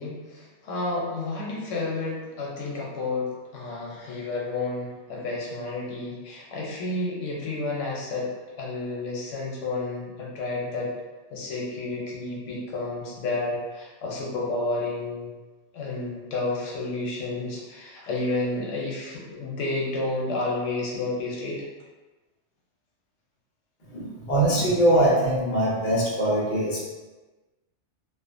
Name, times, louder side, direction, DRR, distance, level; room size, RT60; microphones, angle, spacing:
voice 1, 0.0-8.3 8.6-10.9 11.3-15.3 15.7-21.7, left 2 dB, 85° left, -4 dB, 1.0 m, -31 dB
voice 2, 23.8-26.8, right 1 dB, 45° left, -6 dB, 0.8 m, -22 dB
2.4 x 2.4 x 2.4 m, 1.2 s
omnidirectional pair, 1.2 m